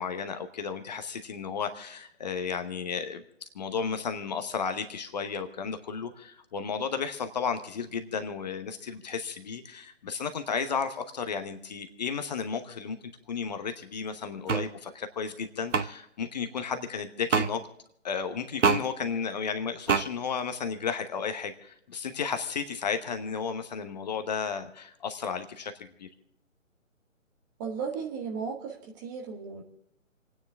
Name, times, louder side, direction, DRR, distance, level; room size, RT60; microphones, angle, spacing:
voice 1, 0.0-13.0 13.3-17.6 18.0-26.1, left 6 dB, 30° left, 8 dB, 1.0 m, -33 dB
sound 1, 14.5-14.7 15.7-15.9 17.3-17.5 18.6-18.8 19.9-20.0, right 5 dB, 65° right, 1.0 m, -23 dB
voice 2, 27.6-29.6, right 6 dB, 15° right, 2 dB, 1.1 m, -35 dB
28.5 x 9.7 x 3.5 m, 0.74 s
figure-of-eight pair, 145°, 40 cm